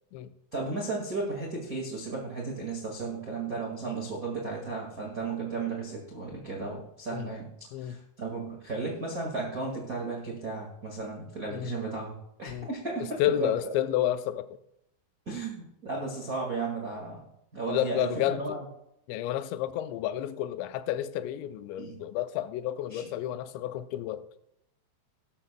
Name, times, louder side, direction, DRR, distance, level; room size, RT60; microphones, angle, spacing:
voice 1, 0.5-13.5 15.2-17.3 17.5-18.6 21.8-22.0 22.9-23.1, right 3 dB, 70° right, 0.8 m, -35 dB
voice 2, 13.2-14.5 17.7-18.6 19.1-24.2, left 12 dB, 90° left, 2.9 m, -30 dB
17.5 x 12.5 x 2.2 m
omnidirectional pair, 5.0 m